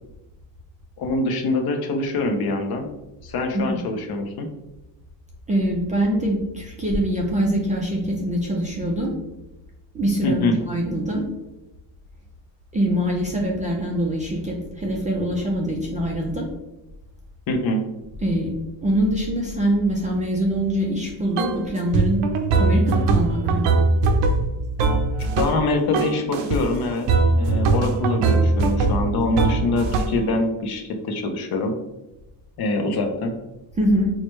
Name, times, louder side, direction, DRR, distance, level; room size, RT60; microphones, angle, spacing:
voice 1, 1.0-2.9 3.2-4.5 10.2-10.6 17.5-17.8 25.2-27.1 27.4-31.7 32.6-33.3, left 2 dB, 55° left, 4 dB, 0.7 m, -24 dB
voice 2, 5.5-9.1 9.9-11.2 12.7-16.4 18.2-18.5 18.8-22.2 22.6-23.7 33.8-34.1, equal, 20° right, -3 dB, 0.3 m, -23 dB
sound 1, 21.4-21.6 21.9-25.7 25.9-26.6 27.1-30.3, right 3 dB, 70° right, 0.6 m, -21 dB
4.7 x 2.1 x 3.0 m, 0.97 s
cardioid pair, 150°, 45 cm